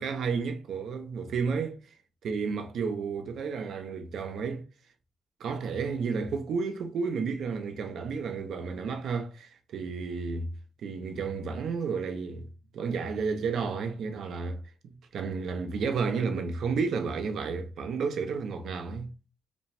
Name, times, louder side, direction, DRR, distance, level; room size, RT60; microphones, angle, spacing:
voice 1, 0.0-1.8 2.2-4.6 5.4-10.5 10.8-12.5 12.7-19.1, right 5 dB, 55° right, 0.6 m, -32 dB
5.0 x 2.2 x 3.3 m
cardioid pair, 170°, 0 cm